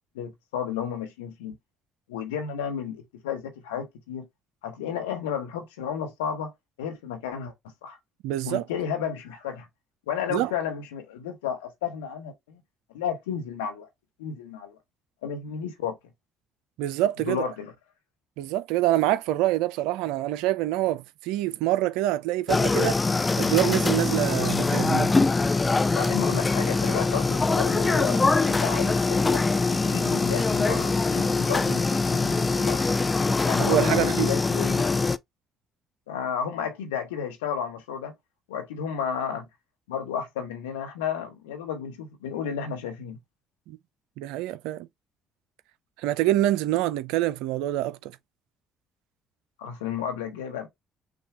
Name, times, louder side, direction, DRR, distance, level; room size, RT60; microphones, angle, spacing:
voice 1, 0.1-1.6 2.1-4.3 4.6-6.5 6.8-7.5 7.8-8.0 8.4-9.7 10.1-12.6 12.9-13.9 14.2-14.8 15.2-16.0 17.2-17.7 25.9-29.4 29.7-32.8 33.5-34.8 36.1-38.1 38.5-39.5 39.9-43.2 49.6-50.7, left 8 dB, 80° left, 1.0 m, -32 dB
voice 2, 8.2-8.6 10.3-10.5 16.8-17.4 18.4-23.0 23.4-25.1 33.6-34.3 43.7-43.8 44.2-44.9 46.0-48.1, right 15 dB, 75° right, 0.4 m, -26 dB
sound 1, 22.5-35.2, left 3 dB, 25° left, 0.5 m, -23 dB
6.1 x 2.3 x 2.9 m
hypercardioid pair, 50°, 0 cm